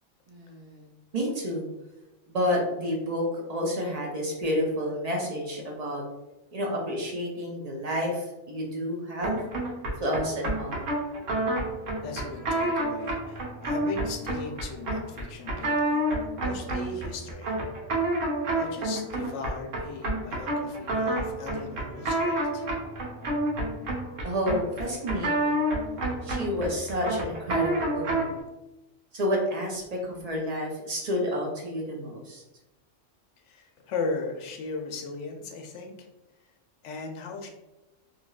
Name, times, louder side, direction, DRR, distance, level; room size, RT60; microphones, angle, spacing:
voice 1, 0.3-0.9 1.1-1.6 2.3-6.0 6.5-9.4 10.0-10.9 24.2-25.7 26.2-28.4 29.1-32.4, equal, 50° right, -1 dB, 0.4 m, -30 dB
sound 1, 9.2-28.4, right 1 dB, 90° right, 1.3 m, -29 dB
voice 2, 12.0-16.0 16.4-17.6 18.5-22.7 33.5-36.1 36.8-37.5, left 3 dB, 75° left, 3 dB, 0.9 m, -37 dB
3.1 x 2.6 x 2.3 m, 1.0 s
omnidirectional pair, 1.3 m